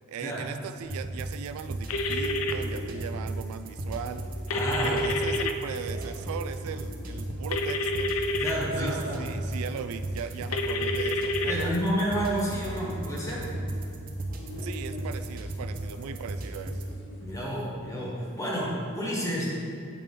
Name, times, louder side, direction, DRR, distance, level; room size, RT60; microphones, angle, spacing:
voice 1, 0.1-4.2 4.8-8.1 8.8-11.7 14.6-17.0, right 7 dB, 85° right, 14 dB, 0.3 m, -38 dB
sound 1, 0.8-16.9, right 1 dB, 40° right, 0.7 m, -35 dB
sound 2, 1.7-17.3, left 2 dB, 60° left, 1.5 m, -48 dB
sound 3, 1.9-2.5 4.5-5.5 7.5-8.5 10.5-11.5, left 2 dB, 80° left, 0.5 m, -28 dB
voice 2, 4.5-5.0 8.4-9.3 11.5-13.4 17.2-19.5, equal, 15° left, -4 dB, 1.3 m, -30 dB
8.3 x 4.9 x 3.7 m, 2.4 s
head